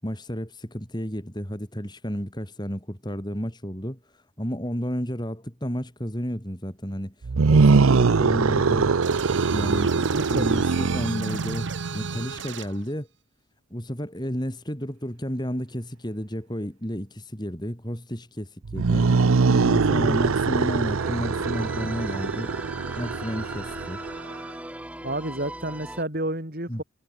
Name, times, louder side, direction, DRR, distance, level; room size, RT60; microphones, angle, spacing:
voice 1, 0.0-4.0 4.4-7.1 7.5-8.9 9.5-13.1 13.7-19.1 19.5-22.6 23.0-24.0 26.7-26.8, equal, 20° left, 5.7 m, -31 dB
sound 1, 7.2-12.4 18.7-24.3, right 4 dB, 90° right, 0.6 m, -22 dB
sound 2, 9.0-12.8, right 5 dB, 60° right, 4.3 m, -37 dB
voice 2, 9.9-10.5 20.0-20.2 25.0-26.8, right 1 dB, 45° right, 4.1 m, -30 dB
sound 3, 20.9-26.0, right 1 dB, 5° right, 6.7 m, -39 dB
head